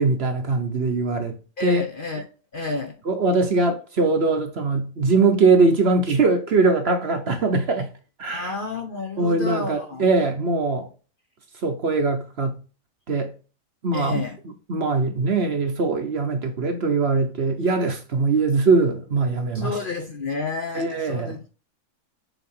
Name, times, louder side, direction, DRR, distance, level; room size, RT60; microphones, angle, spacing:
voice 1, 0.0-1.8 3.1-7.9 8.2-8.5 9.2-10.9 11.6-12.6 13.1-13.3 13.8-14.2 14.7-19.7 20.7-21.4, right 3 dB, 50° right, 1.0 m, -21 dB
voice 2, 1.6-2.2 2.5-2.9 8.3-10.0 13.9-14.4 19.5-21.5, left 4 dB, 45° left, 0.8 m, -30 dB
7.0 x 2.9 x 5.5 m
omnidirectional pair, 1.6 m